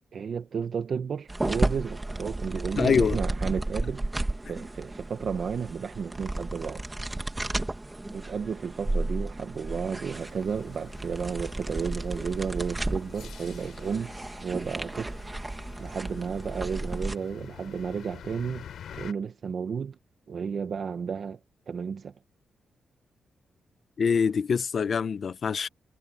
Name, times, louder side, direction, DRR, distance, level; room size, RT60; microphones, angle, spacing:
voice 1, 0.1-4.1 4.4-6.8 8.1-14.1 14.4-15.2 15.8-18.6 18.9-20.0 20.3-21.4 21.7-22.1, right 6 dB, 50° right, 1.1 m, -32 dB
sound 1, 1.3-17.1, right 2 dB, 15° right, 1.7 m, -33 dB
voice 2, 2.8-3.2 24.0-25.7, left 6 dB, 45° left, 0.9 m, -24 dB
sound 2, 10.1-19.1, left 9 dB, 80° left, 3.8 m, -48 dB
wide cardioid pair, 160°, 0 cm